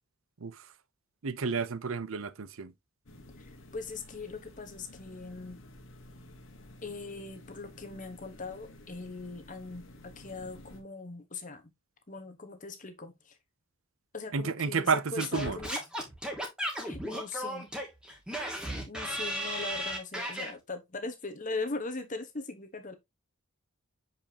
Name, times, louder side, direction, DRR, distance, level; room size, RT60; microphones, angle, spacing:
voice 1, 1.2-2.7 14.3-15.6, right 5 dB, 75° right, 0.6 m, -31 dB
sound 1, 3.1-10.8, left 1 dB, 65° left, 1.5 m, -52 dB
voice 2, 3.4-5.6 6.8-11.6 12.1-13.4 14.1-15.8 16.8-17.7 18.9-22.9, left 3 dB, 40° left, 1.3 m, -40 dB
Singing / Scratching (performance technique), 15.2-20.5, equal, 5° right, 1.6 m, -35 dB
7.0 x 5.2 x 2.9 m
head